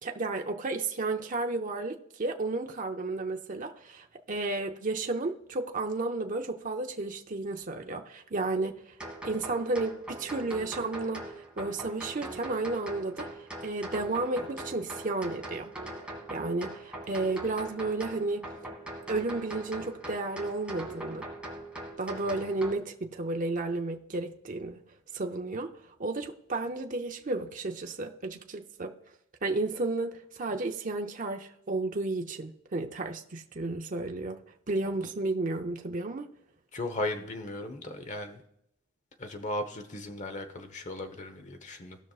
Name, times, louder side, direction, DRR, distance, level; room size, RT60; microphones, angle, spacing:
voice 1, 0.0-9.0 9.2-13.3 13.6-15.7 16.3-18.5 19.1-21.3 22.0-24.8 25.1-25.7 26.0-28.9 29.4-34.4 34.7-36.3, right 2 dB, 40° right, 0.7 m, -32 dB
sound 1, 9.0-22.7, right 1 dB, 5° right, 1.8 m, -41 dB
voice 2, 36.7-38.4 39.2-42.0, left 1 dB, 35° left, 1.0 m, -36 dB
18.0 x 6.0 x 2.4 m
head